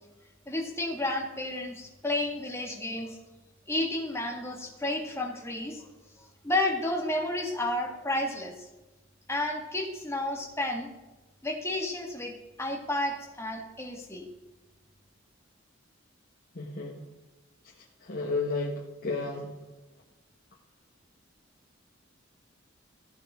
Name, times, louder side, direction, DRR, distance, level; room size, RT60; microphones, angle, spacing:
voice 1, 0.5-3.2 3.7-5.8 6.2-8.5 9.3-10.9 11.4-14.3, left 1 dB, 15° left, 1 dB, 2.0 m, -31 dB
voice 2, 16.5-17.0 18.0-19.5, left 3 dB, 50° left, -2 dB, 1.5 m, -32 dB
14.5 x 9.7 x 3.7 m, 1.1 s
head